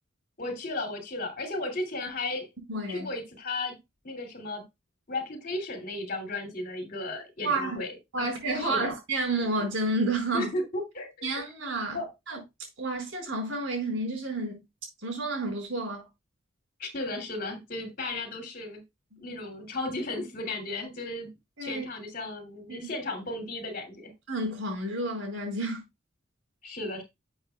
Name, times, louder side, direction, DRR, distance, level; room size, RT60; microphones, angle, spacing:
voice 1, 0.4-2.5 2.9-3.8 4.0-4.6 5.1-7.9 8.2-8.9 10.3-11.3 11.9-12.1 16.8-18.8 19.2-21.3 21.6-24.1 26.6-27.0, left 2 dB, 50° left, 2.7 m, -35 dB
voice 2, 2.7-3.1 7.4-7.8 8.1-10.5 11.2-12.0 12.3-12.4 12.8-14.6 15.0-16.1 19.2-19.3 21.6-21.9 22.7-22.9 24.3-25.8, right 2 dB, 75° right, 4.5 m, -30 dB
11.5 x 7.1 x 2.3 m
head